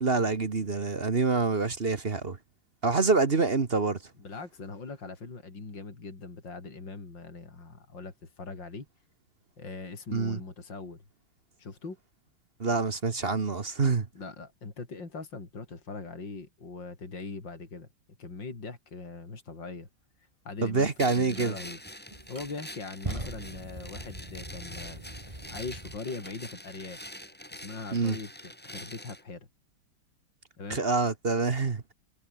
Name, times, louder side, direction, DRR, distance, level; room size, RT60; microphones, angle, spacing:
voice 1, 0.0-2.4 2.8-4.0 10.1-10.4 12.6-14.1 20.6-21.5 27.9-28.2 30.7-31.8, right 4 dB, 30° right, 1.3 m, -26 dB
voice 2, 4.2-8.9 9.6-11.0 11.6-12.0 14.2-17.9 18.2-19.9 20.5-27.0 27.5-29.5 30.6-30.8, left 3 dB, 55° left, 5.1 m, -41 dB
sound 1, 21.0-29.2, left 1 dB, 5° left, 2.4 m, -45 dB
sound 2, 21.3-21.5 22.1-26.4, right 1 dB, 15° right, 4.2 m, -41 dB
omnidirectional pair, 2.4 m